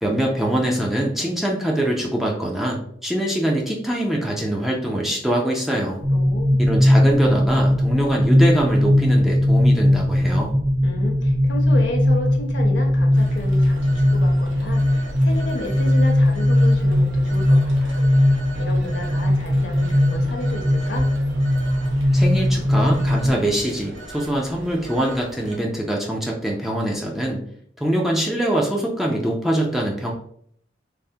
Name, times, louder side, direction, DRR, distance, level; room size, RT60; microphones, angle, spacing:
voice 1, 0.0-6.0 6.6-10.5 22.1-27.4 27.8-30.1, right 1 dB, ahead, -2 dB, 0.3 m, -23 dB
sound 1, 6.0-23.3, left 1 dB, 60° right, 1.2 m, -19 dB
voice 2, 6.1-6.7 10.8-18.0 18.6-21.1, left 1 dB, 70° left, 1 dB, 0.7 m, -32 dB
Telephone, 13.1-25.6, right 2 dB, 85° right, 0.7 m, -39 dB
3.3 x 2.1 x 2.6 m, 0.65 s
head